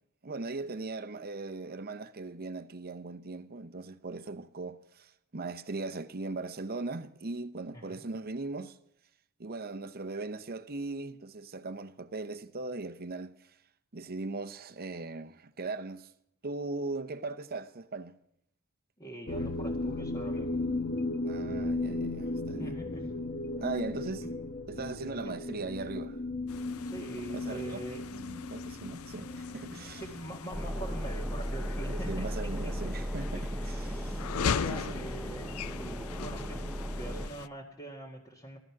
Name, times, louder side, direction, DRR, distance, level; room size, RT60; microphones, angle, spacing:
voice 1, 0.2-8.8 9.4-13.5 13.9-16.1 16.4-18.1 21.2-22.8 23.6-24.2 24.7-26.2 27.3-27.8 28.1-30.0 31.9-34.3 34.6-35.0 35.6-35.7, right 3 dB, 45° right, 0.8 m, -39 dB
voice 2, 19.0-20.6 22.6-23.1 24.2-24.3 25.2-25.4 26.8-28.3 29.2-32.3 33.3-36.6 37.0-38.6, right 1 dB, 20° left, 1.9 m, -44 dB
sound 1, 19.3-30.4, left 2 dB, 45° left, 1.0 m, -36 dB
sound 2, 26.5-37.5, left 7 dB, 75° left, 0.5 m, -40 dB
sound 3, 30.5-37.3, equal, ahead, 0.7 m, -36 dB
17.0 x 13.0 x 5.9 m
head